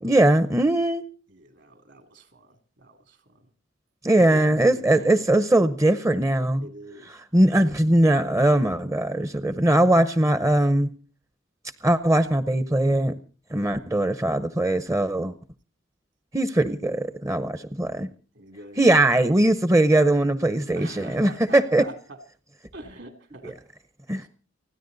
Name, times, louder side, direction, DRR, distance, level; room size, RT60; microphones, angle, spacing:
voice 1, 0.0-1.0 4.0-6.6 7.3-10.9 11.8-13.1 13.5-15.3 16.3-18.1 18.8-21.8 23.4-23.5 24.1-24.2, right 1 dB, 15° right, 12 dB, 0.8 m, -20 dB
voice 2, 1.3-3.5 4.1-4.4 4.6-5.3 6.6-7.2 18.3-18.9 20.7-22.2 22.7-23.6 24.1-24.3, right 1 dB, 65° right, 8 dB, 2.8 m, -44 dB
30.0 x 10.0 x 4.0 m, 0.36 s
head